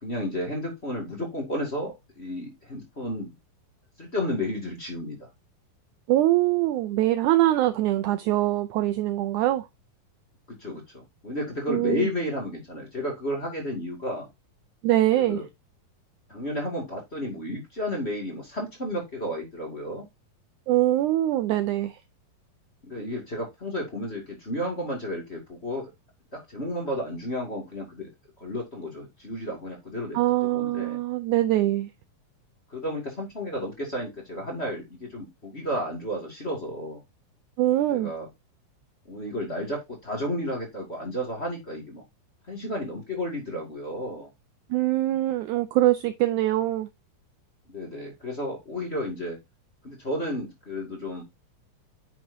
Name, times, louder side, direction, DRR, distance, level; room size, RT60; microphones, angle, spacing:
voice 1, 0.0-3.3 4.0-5.3 10.5-14.3 15.2-15.5 16.3-20.1 22.8-25.9 26.3-28.1 28.4-31.0 32.7-37.0 37.9-38.3 39.0-42.0 42.5-44.3 47.7-49.4 49.8-51.2, left 1 dB, 20° left, 1.9 m, -32 dB
voice 2, 6.1-9.7 11.7-12.1 14.8-15.4 20.7-22.0 30.1-31.9 37.6-38.1 44.7-46.9, right 15 dB, 90° right, 1.7 m, -23 dB
9.1 x 6.1 x 2.7 m
omnidirectional pair, 4.1 m